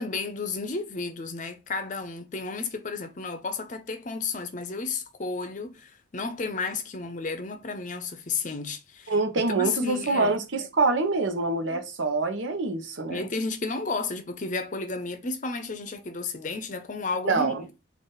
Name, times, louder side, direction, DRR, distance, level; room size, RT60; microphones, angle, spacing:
voice 1, 0.0-10.4 11.7-11.8 13.1-17.7, left 4 dB, 40° left, 0.6 m, -32 dB
voice 2, 9.1-13.3 17.2-17.6, right 3 dB, 80° right, 0.8 m, -25 dB
3.9 x 2.5 x 3.9 m
head